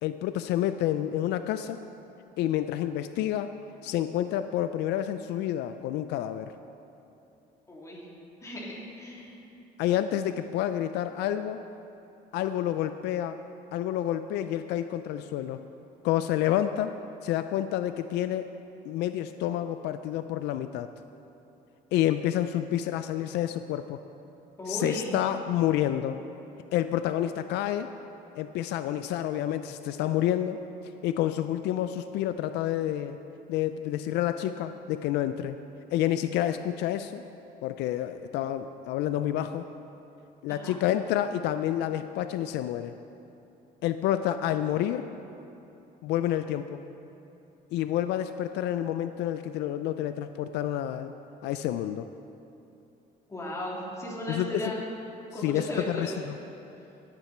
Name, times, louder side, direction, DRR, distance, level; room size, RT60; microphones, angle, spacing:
voice 1, 0.0-1.8 2.4-3.5 3.8-6.5 9.8-11.6 12.3-13.4 13.7-15.6 16.0-17.0 17.2-18.5 18.9-20.9 21.9-24.0 24.7-26.2 26.7-27.9 28.3-30.6 31.0-33.2 33.5-35.6 35.9-37.2 37.6-39.7 40.4-42.9 43.8-45.1 46.0-46.8 47.7-51.1 51.4-52.1 54.3-54.6 55.4-56.4, left 12 dB, 85° left, 10 dB, 0.4 m, -29 dB
voice 2, 7.7-8.0 8.4-9.3 24.6-25.2 40.5-40.8 53.3-54.8 55.3-56.1, equal, 20° left, -5 dB, 3.3 m, -36 dB
16.5 x 9.2 x 4.4 m, 2.9 s
cardioid pair, 110°, 17 cm